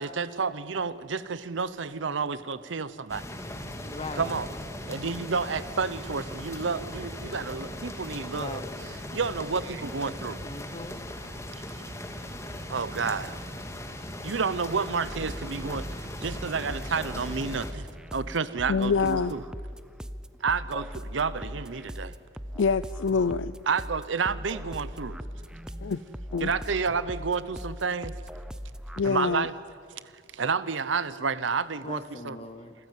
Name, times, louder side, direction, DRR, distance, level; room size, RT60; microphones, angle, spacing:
voice 1, 0.0-3.2 4.2-4.5 4.9-8.6 9.1-10.4 12.7-13.4 14.2-15.9 16.2-19.4 20.4-22.1 23.7-25.2 26.4-28.1 29.0-29.5 30.3-32.4, right 5 dB, 90° right, 15 dB, 0.8 m, -30 dB
sound 1, 3.1-17.7, left 1 dB, 15° left, 2.0 m, -39 dB
voice 2, 3.8-4.3 8.3-8.7 10.4-11.1 31.8-32.7, left 2 dB, 30° left, 10 dB, 1.0 m, -40 dB
sound 2, 15.1-29.0, equal, 5° right, 0.6 m, -40 dB
voice 3, 18.7-19.3 22.6-23.6 25.8-26.0 26.3-26.5 29.0-29.4, left 5 dB, 85° left, 16 dB, 0.5 m, -25 dB
27.5 x 15.0 x 9.2 m, 2.3 s
head